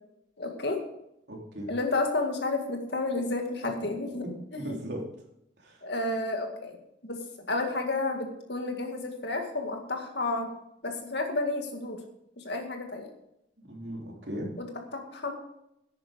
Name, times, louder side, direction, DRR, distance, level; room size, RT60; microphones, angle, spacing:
voice 1, 0.4-0.8 1.7-4.8 5.8-6.8 7.0-10.5 10.8-12.0 12.4-13.1 14.6-15.3, left 2 dB, 60° left, 4 dB, 2.0 m, -31 dB
voice 2, 1.3-1.7 4.2-5.0 5.6-5.8 13.6-14.5, equal, 65° right, -1 dB, 3.2 m, -37 dB
11.0 x 9.4 x 5.2 m, 0.81 s
head